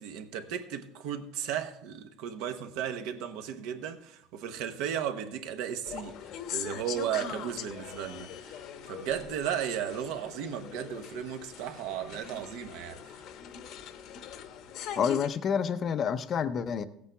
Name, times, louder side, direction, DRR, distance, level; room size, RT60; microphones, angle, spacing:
voice 1, 0.0-8.6 8.9-13.1, right 9 dB, 65° right, 1.0 m, -35 dB
sound 1, 5.8-15.3, left 8 dB, 50° left, 0.9 m, -42 dB
voice 2, 15.0-16.8, left 7 dB, 30° left, 0.6 m, -28 dB
16.5 x 8.4 x 3.4 m
cardioid pair, 160°, 0 cm